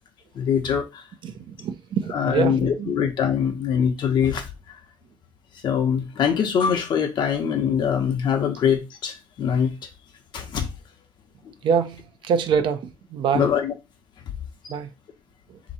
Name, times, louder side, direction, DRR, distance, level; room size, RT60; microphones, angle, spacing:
voice 1, 0.3-1.0 2.1-4.5 5.6-9.7 10.3-10.7 13.3-13.7, left 7 dB, 60° left, 1.0 m, -23 dB
voice 2, 1.2-2.9 11.6-13.5 14.7-14.9 15.5-15.6, right 7 dB, 65° right, 0.6 m, -25 dB
3.6 x 3.0 x 4.1 m
cardioid pair, 155°, 9 cm